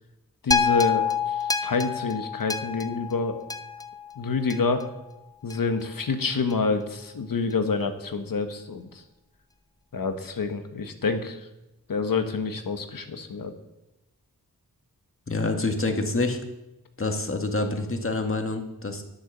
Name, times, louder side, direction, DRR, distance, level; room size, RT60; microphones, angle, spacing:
voice 1, 0.4-3.4 4.2-4.8 5.4-8.9 9.9-11.4 11.9-13.5, left 4 dB, 70° left, 7 dB, 1.4 m, -27 dB
sound 1, 0.5-4.8 5.5-5.6, left 6 dB, 10° left, 0.9 m, -27 dB
voice 2, 15.3-16.4 17.0-19.0, left 2 dB, 35° left, 4 dB, 2.0 m, -27 dB
10.0 x 8.7 x 6.8 m, 0.94 s
cardioid pair, 45°, 35 cm